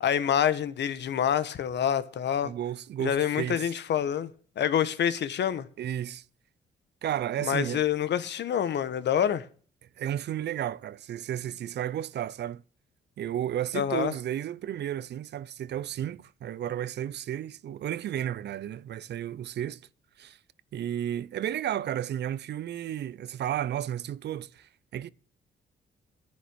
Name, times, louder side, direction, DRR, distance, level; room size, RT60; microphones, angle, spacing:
voice 1, 0.0-2.5 3.0-4.3 4.6-5.7 7.4-9.4 13.7-14.1, left 9 dB, 60° left, 1.1 m, -27 dB
voice 2, 2.4-3.8 5.8-6.2 7.0-7.8 10.0-12.6 13.2-19.8 20.2-20.4 20.7-25.1, right 11 dB, 60° right, 0.6 m, -33 dB
10.0 x 9.8 x 6.2 m
cardioid pair, 90°, 20 cm